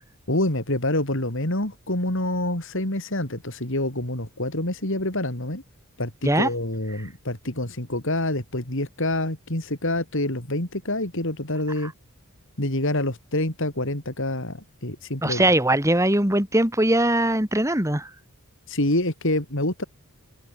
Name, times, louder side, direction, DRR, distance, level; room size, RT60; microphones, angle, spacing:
voice 1, 0.3-5.6 6.0-11.9 12.6-15.5 18.7-19.8, left 1 dB, 60° left, 4.6 m, -27 dB
voice 2, 15.2-18.1, right 1 dB, 15° right, 3.3 m, -21 dB
open air
head